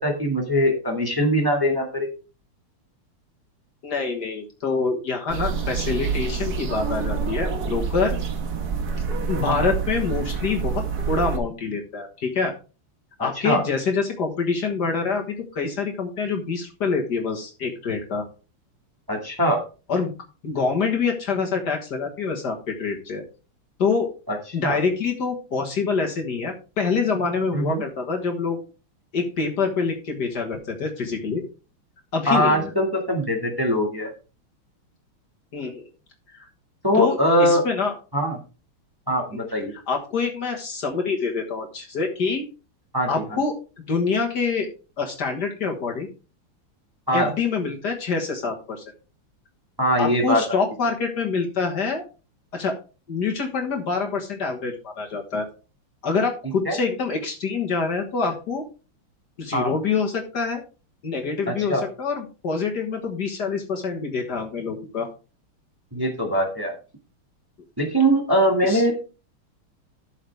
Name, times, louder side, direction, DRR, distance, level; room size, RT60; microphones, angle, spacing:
voice 1, 0.0-2.1 9.4-9.7 13.4-13.6 19.1-19.6 24.3-24.4 24.6-24.8 27.5-27.8 32.3-34.1 36.8-37.6 38.1-38.4 39.1-39.7 42.9-43.4 47.1-47.3 49.8-50.6 56.6-56.8 59.5-59.7 61.5-61.8 65.9-66.7 67.8-68.9, equal, 10° right, 1 dB, 1.7 m, -22 dB
voice 2, 3.8-8.2 9.3-12.5 13.2-15.2 15.5-18.2 19.9-20.1 20.4-23.2 23.8-24.1 24.5-28.6 29.1-31.4 32.1-32.7 35.5-35.9 36.3-36.5 36.9-37.9 39.7-42.5 43.1-43.5 43.9-44.7 45.0-46.1 47.1-48.8 50.0-52.0 52.5-52.8 53.1-55.5 56.0-58.6 59.4-60.6 61.0-65.1 68.6-68.8, left 4 dB, 50° left, 2 dB, 1.9 m, -26 dB
sound 1, 5.3-11.4, right 5 dB, 50° right, 1.6 m, -27 dB
12.5 x 6.6 x 3.4 m, 0.33 s
omnidirectional pair, 2.4 m